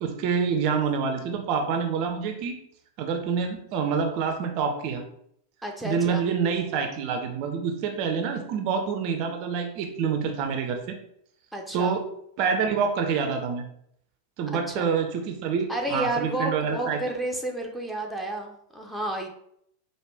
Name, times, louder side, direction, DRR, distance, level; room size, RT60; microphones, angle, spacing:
voice 1, 0.0-2.6 3.0-5.0 5.8-10.9 11.7-12.1 12.4-13.7 14.4-17.0, right 6 dB, 45° right, 4 dB, 0.5 m, -27 dB
voice 2, 5.6-6.2 11.5-12.0 14.7-14.9 15.7-19.3, right 1 dB, ahead, 0 dB, 0.6 m, -31 dB
4.8 x 2.2 x 3.3 m, 0.71 s
figure-of-eight pair, 90°, 0 cm